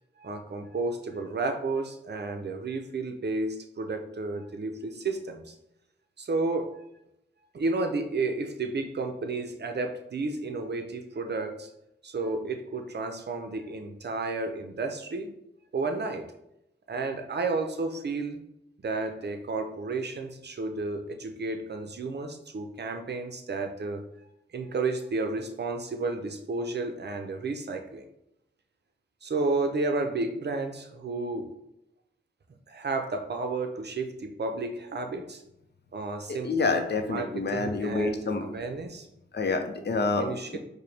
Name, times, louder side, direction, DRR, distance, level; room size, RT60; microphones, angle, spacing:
voice 1, 0.2-5.5 6.2-6.8 7.5-11.7 12.0-15.3 15.7-16.3 16.9-18.4 18.8-24.0 24.5-28.1 29.2-31.5 32.7-35.4 35.9-36.5 37.0-39.1 40.2-40.6, right 3 dB, 55° right, 5 dB, 0.6 m, -32 dB
voice 2, 36.3-38.5 39.3-40.6, left 3 dB, 55° left, 5 dB, 0.6 m, -28 dB
4.8 x 2.2 x 3.3 m, 0.82 s
cardioid pair, 45°, 21 cm